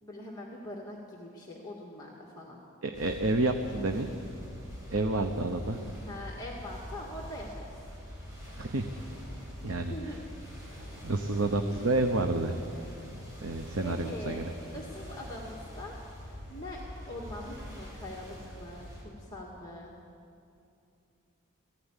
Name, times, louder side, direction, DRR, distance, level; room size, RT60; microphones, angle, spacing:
voice 1, 0.0-2.6 6.1-7.8 9.6-10.2 10.8-10.9 13.8-14.4 14.7-19.9, left 1 dB, 20° left, -3 dB, 1.9 m, -43 dB
voice 2, 2.8-4.1 4.9-5.8 8.6-8.9 9.6-9.9 11.0-12.6 13.4-14.5, right 2 dB, 75° right, 5 dB, 1.0 m, -29 dB
sound 1, 2.9-19.0, equal, 15° right, 6.4 m, -44 dB
18.5 x 15.5 x 9.9 m, 2.6 s
head